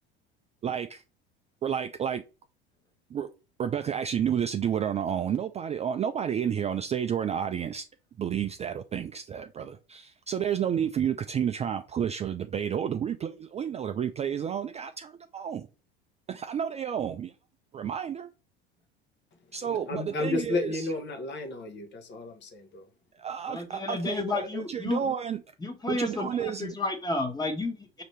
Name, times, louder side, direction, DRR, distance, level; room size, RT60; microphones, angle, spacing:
voice 1, 0.6-1.0 1.6-2.2 3.1-3.3 3.6-7.8 8.2-15.7 16.3-17.3 17.7-18.3 19.5-20.9 23.2-25.4 25.9-26.7, right 8 dB, 25° right, 0.4 m, -31 dB
voice 2, 19.6-22.9, left 3 dB, 35° left, 1.0 m, -33 dB
voice 3, 23.5-25.0 25.6-28.0, left 3 dB, 15° left, 1.3 m, -31 dB
5.0 x 2.8 x 3.2 m
hypercardioid pair, 85°, 30 cm